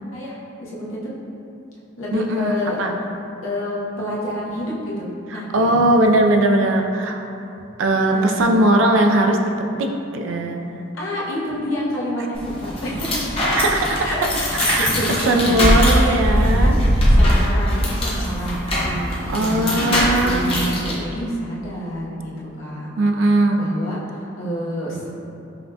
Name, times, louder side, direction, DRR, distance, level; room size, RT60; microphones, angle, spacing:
voice 1, 0.1-1.1 2.0-2.8 3.4-5.8 8.0-8.7 10.9-13.3 14.0-16.8 17.1-19.8 20.2-22.9 23.5-25.1, equal, 85° left, -6 dB, 0.8 m, -28 dB
voice 2, 2.1-2.9 5.5-7.2 7.8-9.5 9.8-10.8 13.5-14.1 14.6-14.9 15.3-16.8 19.3-20.5 23.0-23.6, right 1 dB, 70° right, 3 dB, 0.3 m, -19 dB
sound 1, 12.3-20.9, equal, 30° left, 0.7 m, -20 dB
5.5 x 2.1 x 2.7 m, 2.8 s
head